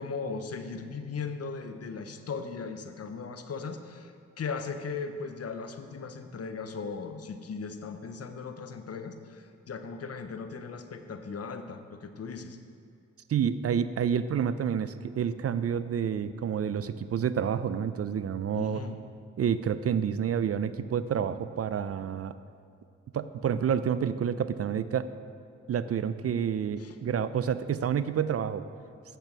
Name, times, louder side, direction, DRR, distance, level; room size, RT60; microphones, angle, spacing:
voice 1, 0.0-12.6 18.5-18.9 26.8-27.0, left 5 dB, 55° left, 8 dB, 0.8 m, -38 dB
voice 2, 13.3-18.8 19.4-22.3 23.1-25.1 25.7-28.6, right 8 dB, 50° right, 13 dB, 0.4 m, -29 dB
8.1 x 6.7 x 6.0 m, 2.4 s
cardioid pair, 60°, 30 cm